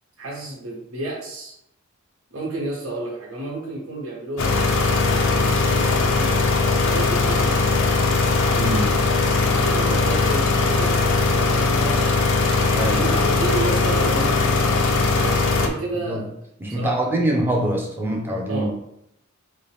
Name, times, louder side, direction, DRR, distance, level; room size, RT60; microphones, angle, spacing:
voice 1, 0.2-1.5 2.3-4.5 5.0-6.5 6.9-7.8 9.5-12.2 12.9-16.2 16.7-17.3 18.5-18.7, right 2 dB, 80° right, -4 dB, 1.5 m, -31 dB
sound 1, 4.4-15.7, left 3 dB, 65° left, 0.5 m, -20 dB
voice 2, 8.5-8.9 12.7-13.1 16.0-16.2 16.6-18.7, right 1 dB, 10° right, -1 dB, 0.6 m, -24 dB
4.2 x 2.2 x 3.3 m, 0.77 s
head